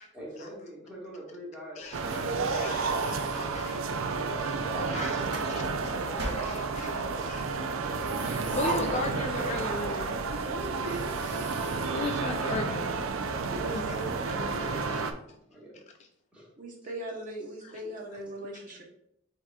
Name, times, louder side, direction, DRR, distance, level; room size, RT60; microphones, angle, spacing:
voice 1, 0.1-3.7 13.5-15.8 16.3-16.5 17.5-17.6, equal, 5° right, -6 dB, 1.5 m, -46 dB
sound 1, 1.8-4.1 4.9-5.5 6.2-7.1 7.8-10.0 10.3-10.4 10.8-12.8, right 2 dB, 60° right, 1.3 m, -40 dB
sound 2, 1.9-15.1, right 4 dB, 90° right, 0.4 m, -31 dB
voice 2, 2.5-3.8 4.4-4.6 4.9-5.1 5.5-5.6 6.2-6.9 7.3-7.4 8.2-10.2 11.2-11.3 11.9-13.1 13.7-13.9 14.3-14.4 14.9-15.0, left 2 dB, 35° left, 4 dB, 0.3 m, -36 dB
voice 3, 4.7-7.4 10.4-11.1 13.3-14.2 16.6-18.8, right 2 dB, 40° right, -1 dB, 0.7 m, -40 dB
7.8 x 2.9 x 2.3 m, 0.75 s
head